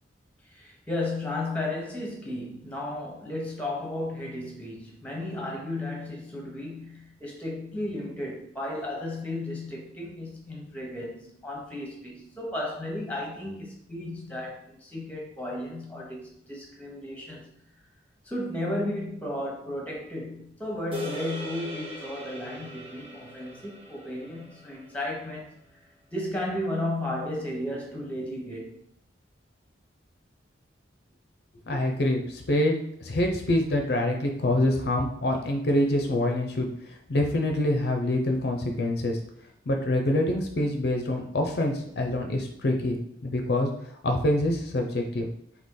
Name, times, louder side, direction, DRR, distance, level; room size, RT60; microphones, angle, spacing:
voice 1, 0.5-17.5 18.2-25.5 26.1-28.8, left 1 dB, 5° left, -1 dB, 0.9 m, -34 dB
sound 1, 20.9-25.4, equal, 30° right, 1.2 m, -40 dB
voice 2, 31.7-36.7 37.1-39.2 39.7-43.7 44.0-45.3, left 1 dB, 55° left, 3 dB, 0.5 m, -26 dB
4.1 x 2.8 x 3.8 m, 0.71 s
head